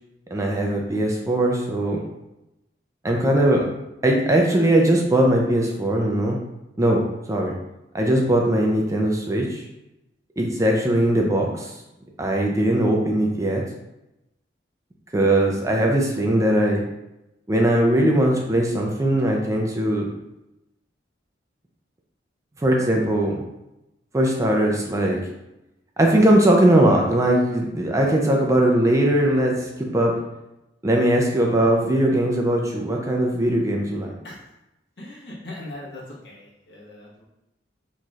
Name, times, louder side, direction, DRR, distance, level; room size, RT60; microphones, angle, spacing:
voice 1, 0.3-2.0 3.0-3.7 4.0-6.4 6.8-7.0 7.3-7.5 7.9-9.6 10.4-11.7 12.2-13.6 15.1-16.8 17.5-20.1 22.6-23.4 24.1-25.2 26.0-30.1 30.8-34.2, right 1 dB, 20° right, 0 dB, 0.4 m, -20 dB
voice 2, 35.0-37.2, left 1 dB, 70° left, -4 dB, 1.2 m, -39 dB
4.2 x 3.1 x 2.4 m, 0.92 s
head